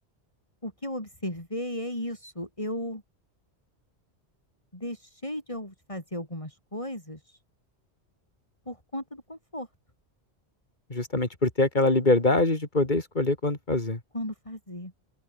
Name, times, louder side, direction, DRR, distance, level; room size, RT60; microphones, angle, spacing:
voice 1, 0.6-3.0 4.7-7.4 8.7-9.7 14.1-14.9, left 1 dB, 30° left, 5.8 m, -35 dB
voice 2, 10.9-14.0, left 2 dB, 45° left, 3.2 m, -24 dB
open air
omnidirectional pair, 1.1 m